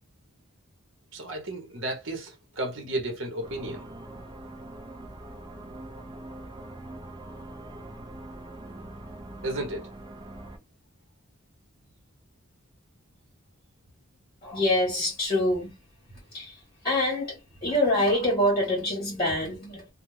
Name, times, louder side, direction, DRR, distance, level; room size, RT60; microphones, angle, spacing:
voice 1, 1.1-3.9 9.4-9.9, right 1 dB, 60° right, 0.9 m, -33 dB
sound 1, 3.4-10.6, right 1 dB, 20° right, 0.4 m, -43 dB
voice 2, 14.4-15.8 16.3-19.9, left 1 dB, 25° left, 1.0 m, -26 dB
2.3 x 2.1 x 3.1 m
head